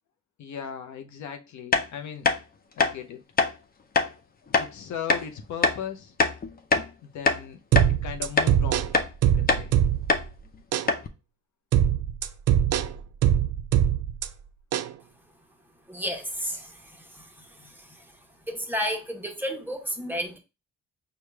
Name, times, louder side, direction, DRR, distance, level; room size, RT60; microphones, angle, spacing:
voice 1, 0.4-2.3 2.7-3.2 4.5-6.1 7.0-7.6 8.0-8.9 9.3-9.7, left 8 dB, 70° left, 0.7 m, -37 dB
sound 1, 1.7-1.9 2.2-2.4 2.8-2.9 3.4-3.5 3.9-4.1 4.5-4.7 5.1-5.2 5.6-5.8 6.2-6.9 7.2-7.4 7.7-7.9 8.4-8.5 8.9-9.1 9.5-9.7 10.1-10.3 10.5-10.6 10.9-11.1, left 4 dB, 30° left, 0.6 m, -23 dB
sound 2, 7.7-10.2 10.7-10.9 11.7-14.3 14.7-14.9, right 10 dB, 55° right, 0.4 m, -22 dB
voice 2, 15.9-18.1 18.5-20.4, equal, 5° right, 1.0 m, -33 dB
4.8 x 2.4 x 3.2 m
cardioid pair, 90°, 30 cm